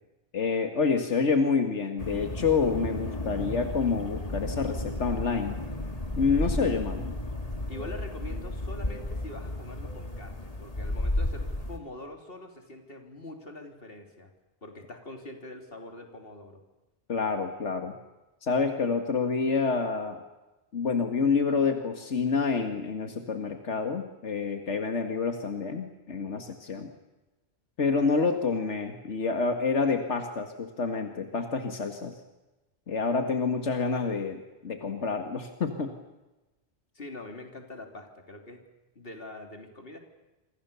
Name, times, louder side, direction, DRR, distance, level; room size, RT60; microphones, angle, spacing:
voice 1, 0.3-5.6 6.2-7.1 17.1-17.9 18.4-20.2 20.7-26.9 27.8-32.1 32.9-35.9, left 4 dB, 90° left, 5 dB, 2.1 m, -28 dB
sound 1, 2.0-11.8, left 1 dB, 35° left, 2.5 m, -33 dB
voice 2, 7.7-14.3 14.6-16.6 36.9-38.6 39.0-40.0, left 2 dB, 55° left, 3 dB, 3.6 m, -44 dB
28.0 x 25.0 x 7.0 m, 1.0 s
omnidirectional pair, 1.2 m